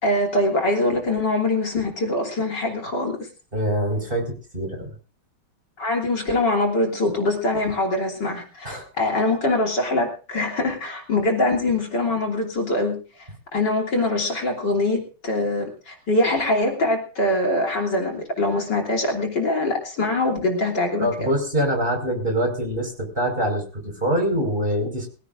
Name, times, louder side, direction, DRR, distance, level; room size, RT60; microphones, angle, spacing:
voice 1, 0.0-3.2 5.8-13.0 13.5-21.3, left 2 dB, 50° left, 1 dB, 3.9 m, -23 dB
voice 2, 3.5-4.9 8.6-8.8 21.0-25.1, right 1 dB, 25° right, 3 dB, 5.5 m, -24 dB
22.5 x 16.5 x 2.6 m, 0.38 s
omnidirectional pair, 2.3 m